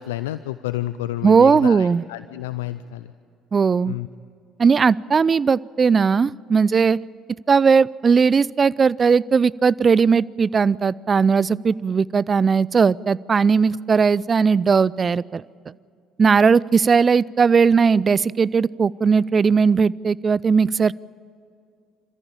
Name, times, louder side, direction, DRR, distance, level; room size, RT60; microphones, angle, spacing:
voice 1, 0.0-3.1 3.9-4.1, left 14 dB, 80° left, 14 dB, 0.5 m, -30 dB
voice 2, 1.2-2.0 3.5-3.9 4.6-7.0 7.5-15.4 16.2-20.9, right 5 dB, 35° right, 22 dB, 0.5 m, -18 dB
27.0 x 14.5 x 8.9 m, 2.5 s
hypercardioid pair, 55°, 0 cm